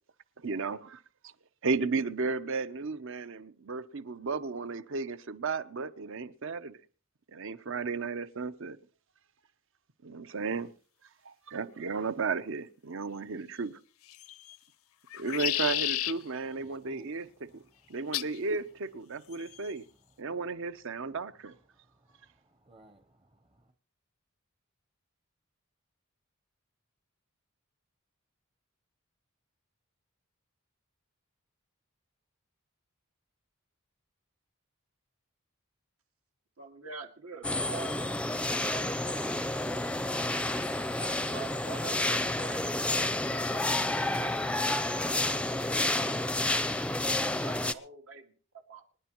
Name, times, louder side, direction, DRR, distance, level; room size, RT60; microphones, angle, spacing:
voice 1, 0.4-1.0 1.6-6.8 7.3-8.8 10.0-10.7 11.2-13.8 15.1-17.6 17.9-19.8 20.2-21.5, right 4 dB, 65° right, 0.8 m, -34 dB
sound 1, 14.1-14.6 15.1-16.1 18.1-18.4 19.3-19.7, left 14 dB, 70° left, 0.6 m, -32 dB
voice 2, 16.6-17.1 17.9-18.0 21.9-23.7, right 2 dB, 25° right, 0.8 m, -60 dB
voice 3, 36.6-39.2 40.7-42.9 43.2-47.0 47.4-48.3 48.7-48.8, right 5 dB, 80° right, 2.1 m, -47 dB
sound 2, 37.4-47.7, left 1 dB, 5° left, 0.5 m, -30 dB
26.5 x 10.5 x 3.0 m
head